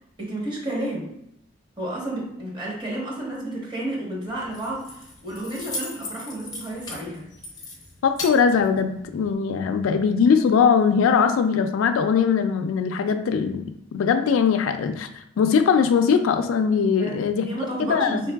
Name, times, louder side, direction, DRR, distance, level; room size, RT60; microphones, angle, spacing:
voice 1, 0.2-1.1 1.8-7.3 17.0-18.3, right 1 dB, 20° right, -4 dB, 1.0 m, -31 dB
Keys jangling, 4.3-9.3, left 2 dB, 20° left, 0.6 m, -38 dB
voice 2, 8.0-15.1 15.4-17.5 17.8-18.2, left 6 dB, 80° left, 7 dB, 0.3 m, -21 dB
4.5 x 3.1 x 2.3 m, 0.76 s
head